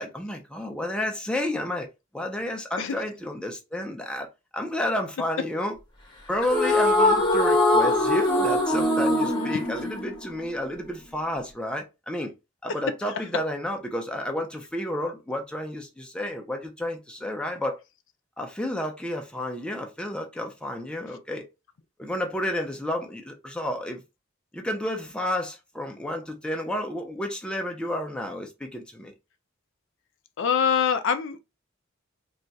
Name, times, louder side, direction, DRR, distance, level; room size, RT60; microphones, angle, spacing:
voice 1, 0.0-1.9 2.1-4.3 4.5-5.8 6.3-12.3 12.6-17.8 18.4-21.4 22.0-24.0 24.5-29.1, left 1 dB, 5° left, 0.5 m, -31 dB
sound 1, 6.4-10.9, left 1 dB, 25° left, 1.0 m, -22 dB
voice 2, 30.4-31.4, left 7 dB, 60° left, 0.4 m, -24 dB
2.3 x 2.2 x 3.9 m
head